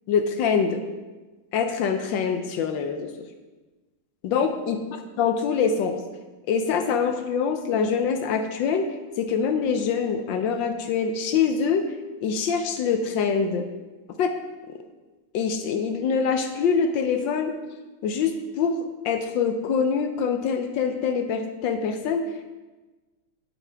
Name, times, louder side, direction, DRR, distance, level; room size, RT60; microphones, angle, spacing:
voice 1, 0.1-0.8 1.5-3.1 4.2-4.8 5.2-6.0 6.5-8.9 9.2-11.9 12.2-13.6 14.2-14.3 15.3-17.5 18.0-18.8 19.0-22.2, left 6 dB, 70° left, 7 dB, 1.2 m, -24 dB
9.2 x 8.2 x 3.4 m, 1.2 s
omnidirectional pair, 2.4 m